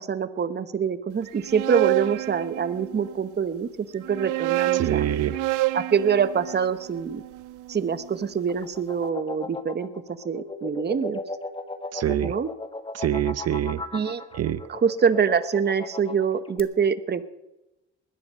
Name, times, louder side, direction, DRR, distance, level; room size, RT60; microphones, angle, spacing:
voice 1, 0.0-3.7 3.9-5.1 5.7-7.2 7.7-9.9 10.2-11.2 12.2-12.5 13.9-14.2 14.7-17.2, right 6 dB, 35° right, 11 dB, 1.0 m, -25 dB
sound 1, 1.3-3.2 4.0-8.1, right 18 dB, 85° right, 0.5 m, -29 dB
voice 2, 4.7-5.4 11.9-12.3 12.9-13.8 14.4-14.6, right 11 dB, 55° right, 16 dB, 0.8 m, -25 dB
sound 2, 8.1-16.6, left 3 dB, 15° left, 1.4 m, -37 dB
20.0 x 11.0 x 5.7 m, 0.97 s
cardioid pair, 90°, 30 cm